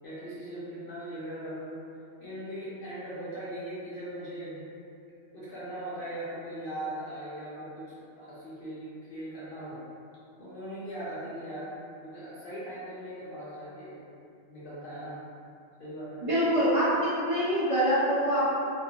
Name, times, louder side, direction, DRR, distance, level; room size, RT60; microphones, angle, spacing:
voice 1, 0.0-1.8 2.2-4.6 5.3-9.8 10.4-14.0 14.5-15.2 15.8-16.3, right 1 dB, 60° left, -10 dB, 0.7 m, -39 dB
voice 2, 16.2-18.4, equal, 45° right, -11 dB, 0.4 m, -25 dB
2.4 x 2.3 x 2.6 m, 2.6 s
omnidirectional pair, 1.2 m